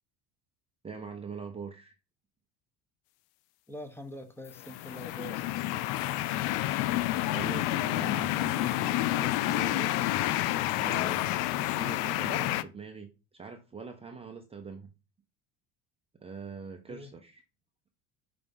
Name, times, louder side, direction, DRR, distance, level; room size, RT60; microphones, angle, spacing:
voice 1, 0.8-1.9 7.3-9.9 10.7-14.9 16.2-17.4, right 5 dB, 15° right, 0.7 m, -43 dB
voice 2, 3.7-5.6 16.9-17.1, equal, 5° left, 1.0 m, -45 dB
sound 1, 4.5-12.6, left 15 dB, 75° left, 0.5 m, -29 dB
5.2 x 3.4 x 5.3 m
supercardioid pair, 105°, 35 cm